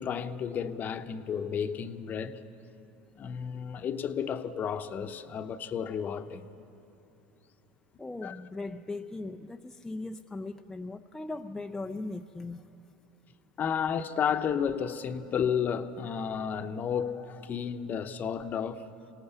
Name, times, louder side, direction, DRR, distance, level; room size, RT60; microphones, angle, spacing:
voice 1, 0.0-2.4 3.2-6.5 8.2-8.4 13.6-18.9, left 7 dB, 35° left, 0.9 m, -32 dB
voice 2, 8.0-12.6, left 2 dB, 10° left, 0.5 m, -38 dB
25.5 x 18.0 x 6.9 m
hypercardioid pair, 95°, 5 cm